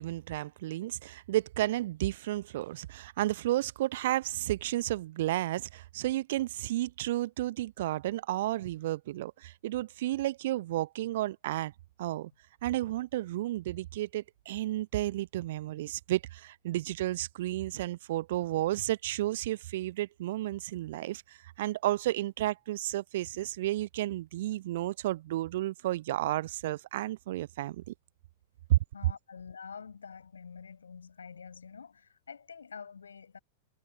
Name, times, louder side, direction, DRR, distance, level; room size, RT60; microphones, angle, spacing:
voice 1, 0.0-11.7 12.0-12.3 12.6-27.9 28.7-28.8, right 15 dB, 55° right, 0.9 m, -32 dB
voice 2, 28.9-33.4, left 6 dB, 70° left, 7.9 m, -47 dB
figure-of-eight pair, 90°, 0 cm